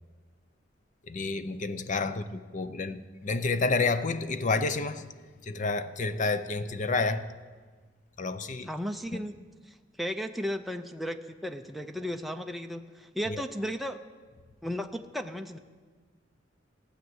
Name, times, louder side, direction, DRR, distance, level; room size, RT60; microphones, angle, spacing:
voice 1, 1.1-5.1 5.4-7.3 8.2-8.7 9.1-9.2 13.3-13.4, left 3 dB, 45° left, 0.6 m, -29 dB
voice 2, 8.7-9.3 9.7-14.0 14.6-15.6, equal, ahead, 0.5 m, -35 dB
16.0 x 8.2 x 7.9 m
head